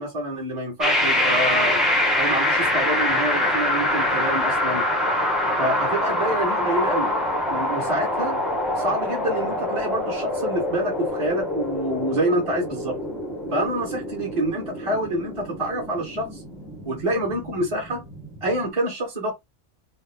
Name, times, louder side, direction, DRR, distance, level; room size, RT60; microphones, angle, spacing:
voice 1, 0.0-1.8 2.1-4.8 5.6-7.1 7.5-8.4 8.8-13.0 13.5-16.4 16.8-18.0 18.4-19.3, right 1 dB, 25° right, 1.3 m, -27 dB
sound 1, 0.8-18.7, left 1 dB, ahead, 0.6 m, -25 dB
3.5 x 2.0 x 3.4 m
omnidirectional pair, 1.3 m